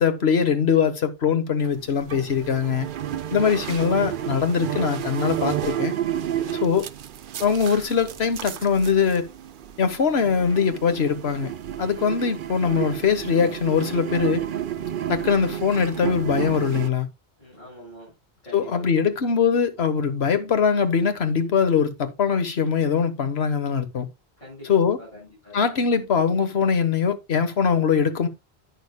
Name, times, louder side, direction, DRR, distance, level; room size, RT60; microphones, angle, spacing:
voice 1, 0.0-2.9 3.3-5.9 6.6-6.8 7.4-9.3 9.8-11.5 11.8-14.4 15.1-17.1 18.5-24.1 24.7-25.0 25.5-28.3, left 6 dB, 85° left, 1.4 m, -22 dB
sound 1, 1.6-16.9, right 10 dB, 60° right, 0.7 m, -31 dB
voice 2, 6.3-6.7 17.4-18.1 18.4-19.1 24.4-24.7 25.0-26.0, right 1 dB, 50° left, 6.7 m, -44 dB
11.0 x 9.0 x 2.2 m
omnidirectional pair, 1.0 m